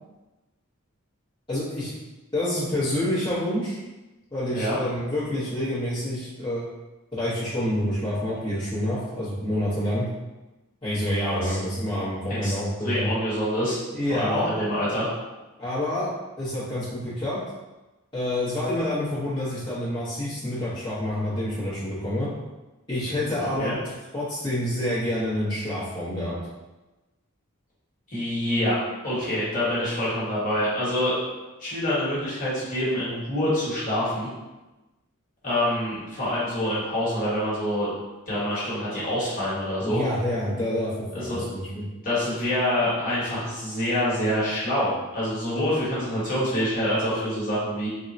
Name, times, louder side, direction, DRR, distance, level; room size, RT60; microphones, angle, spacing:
voice 1, 1.5-1.9 2.3-3.8 4.3-6.6 7.1-10.1 10.8-13.2 13.9-14.5 15.6-16.1 16.4-17.4 18.1-22.3 22.9-23.7 24.1-26.4 39.8-41.9, left 1 dB, 20° left, -14 dB, 0.8 m, -27 dB
voice 2, 12.8-13.8 14.1-15.1 23.4-23.7 28.1-28.8 29.0-31.1 31.6-34.3 35.4-37.9 38.3-40.0 41.1-41.4 42.0-47.9, left 1 dB, 40° left, -10 dB, 1.2 m, -26 dB
3.5 x 2.0 x 2.6 m, 1.1 s
head